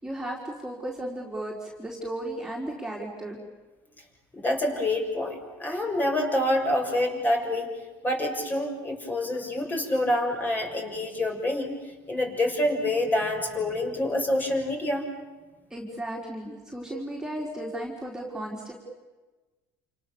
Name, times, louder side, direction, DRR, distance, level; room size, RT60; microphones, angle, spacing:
voice 1, 0.0-3.4 15.7-18.7, right 1 dB, 5° right, -3 dB, 4.6 m, -35 dB
voice 2, 4.3-7.7 8.0-11.7 12.1-15.1, left 1 dB, 20° left, 3 dB, 6.5 m, -27 dB
28.5 x 28.5 x 7.2 m, 1.2 s
cardioid pair, 130°, 9 cm